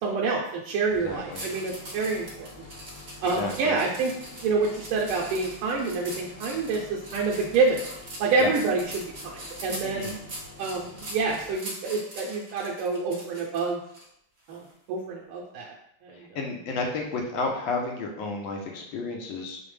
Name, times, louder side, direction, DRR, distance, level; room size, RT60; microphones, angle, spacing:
voice 1, 0.0-2.7 3.2-4.1 4.4-7.8 8.2-10.1 10.6-13.8 14.5-15.7 16.0-16.4, right 4 dB, 80° right, -3 dB, 1.4 m, -27 dB
sound 1, 0.9-11.5, left 3 dB, 10° left, 0.4 m, -48 dB
voice 2, 1.0-1.4 3.3-3.7 8.4-8.5 9.8-10.1 16.1-19.6, left 3 dB, 75° left, 1 dB, 1.3 m, -31 dB
sound 2, 1.3-14.0 14.5-14.7, right 1 dB, 55° right, 0.7 m, -42 dB
5.0 x 2.0 x 3.2 m, 0.73 s
omnidirectional pair, 2.4 m